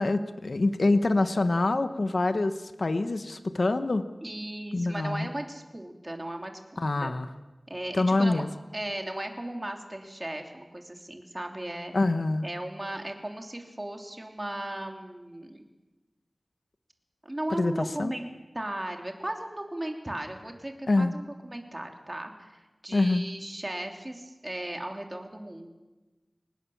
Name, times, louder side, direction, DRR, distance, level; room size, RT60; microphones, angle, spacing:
voice 1, 0.0-4.0 4.7-5.3 6.8-7.3 7.9-8.5 11.9-12.5 17.6-17.7 18.0-18.1 20.9-21.1 22.9-23.3, left 2 dB, 75° left, 10 dB, 1.0 m, -25 dB
voice 2, 4.2-7.2 7.7-8.4 8.7-11.9 12.4-15.7 17.2-18.3 18.5-25.7, right 1 dB, 30° right, 3 dB, 3.1 m, -36 dB
25.0 x 19.5 x 7.2 m, 1.1 s
wide cardioid pair, 60°, 0 cm